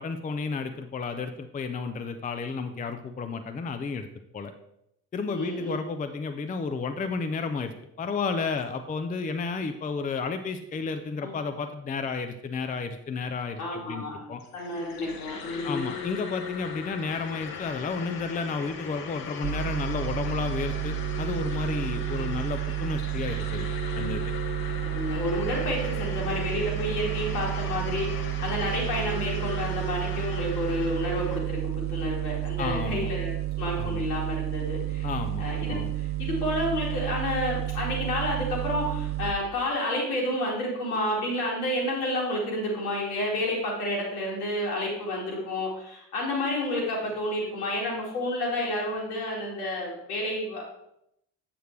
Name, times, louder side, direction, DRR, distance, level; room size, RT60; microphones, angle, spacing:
voice 1, 0.0-4.1 4.3-4.5 5.1-14.4 15.6-23.7 23.9-24.2 32.6-33.1 33.8-34.0 35.0-35.9, left 4 dB, 20° left, 8 dB, 0.6 m, -32 dB
voice 2, 5.3-5.9 11.2-11.3 13.6-14.2 14.5-15.9 24.8-35.1 35.4-50.6, left 1 dB, 70° left, -2 dB, 2.4 m, -30 dB
sound 1, 14.4-31.4, left 7 dB, 50° left, 1.2 m, -39 dB
sound 2, 19.4-39.3, right 19 dB, 25° right, 0.3 m, -31 dB
7.9 x 7.7 x 3.3 m, 0.80 s
figure-of-eight pair, 50°, 47 cm